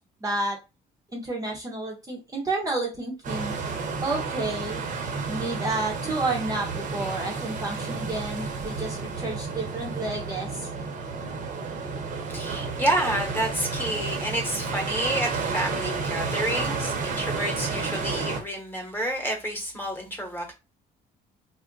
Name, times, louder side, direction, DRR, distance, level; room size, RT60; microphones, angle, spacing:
voice 1, 0.2-0.6 1.1-3.5 4.0-4.8 5.3-10.7, right 2 dB, 20° right, 0.8 m, -30 dB
sound 1, 3.2-18.4, right 4 dB, 50° right, 0.9 m, -31 dB
voice 2, 12.3-20.5, right 1 dB, 10° left, 1.1 m, -29 dB
2.4 x 2.1 x 3.7 m
cardioid pair, 110°, 17 cm